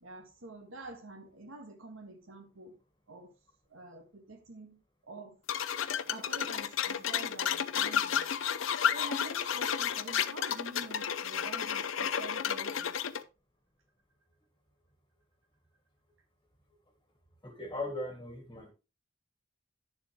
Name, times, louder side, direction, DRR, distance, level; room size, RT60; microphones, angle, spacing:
voice 1, 0.0-2.8 3.1-3.3 3.7-4.8 5.1-5.4 6.1-8.3 8.9-13.0, right 2 dB, 85° right, 1.7 m, -47 dB
sound 1, 5.5-13.2, left 8 dB, 75° left, 0.6 m, -32 dB
voice 2, 17.4-18.7, left 1 dB, 20° left, 1.6 m, -38 dB
10.5 x 7.2 x 3.1 m
head